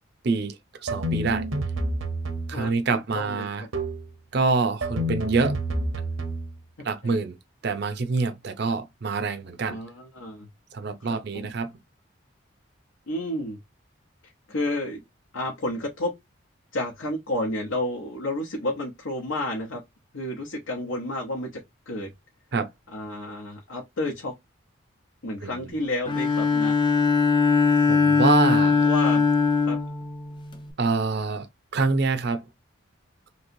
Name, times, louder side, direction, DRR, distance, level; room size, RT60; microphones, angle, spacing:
voice 1, 0.2-1.4 2.5-3.7 4.3-5.6 6.8-7.4 7.6-9.8 10.7-11.7 22.5-22.7 25.4-25.7 27.9-28.8 30.8-31.5 31.7-32.5, right 4 dB, 55° right, 0.5 m, -26 dB
sound 1, 0.9-2.7 3.7-4.1 4.8-6.6, right 1 dB, 80° right, 0.8 m, -29 dB
voice 2, 2.5-3.7 7.0-7.2 9.7-10.5 11.1-11.5 13.1-13.6 14.5-15.0 15.3-16.1 16.7-19.8 20.1-22.1 22.9-24.3 25.2-26.7 28.8-29.3 29.6-29.8, left 1 dB, 80° left, 0.9 m, -31 dB
Bowed string instrument, 26.1-30.7, left 4 dB, 25° left, 0.4 m, -21 dB
3.1 x 2.8 x 2.6 m
head